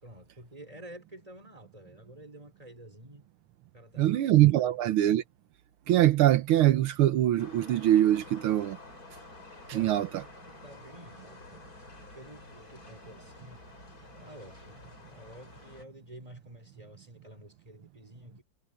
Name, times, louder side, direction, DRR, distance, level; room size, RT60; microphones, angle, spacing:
voice 1, 0.0-3.3 3.7-4.2 4.6-4.8 9.7-10.1 10.5-11.6 12.1-13.7 14.1-18.4, right 1 dB, 15° right, 5.1 m, -50 dB
voice 2, 4.0-5.2 5.9-8.8 9.7-10.2, right 13 dB, 80° right, 1.7 m, -23 dB
sound 1, 7.4-15.8, left 2 dB, 40° left, 6.3 m, -50 dB
omnidirectional pair, 2.3 m